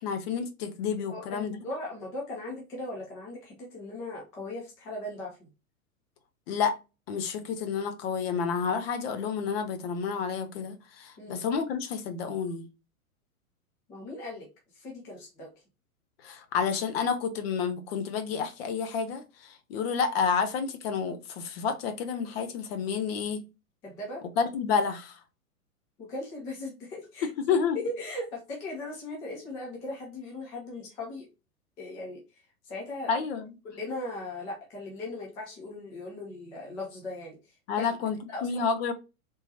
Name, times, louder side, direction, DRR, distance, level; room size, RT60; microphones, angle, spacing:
voice 1, 0.0-1.6 6.5-6.8 7.1-12.7 16.2-23.4 24.4-25.2 27.2-27.8 33.1-33.5 37.7-38.9, left 6 dB, 45° left, 0.8 m, -30 dB
voice 2, 1.1-5.4 11.2-11.4 13.9-15.5 23.8-24.2 26.0-27.3 27.7-31.3 31.8-33.1 33.6-37.4 37.8-37.9 38.3-38.7, left 2 dB, 10° left, 0.3 m, -38 dB
3.6 x 2.9 x 2.8 m
figure-of-eight pair, 100°, 44 cm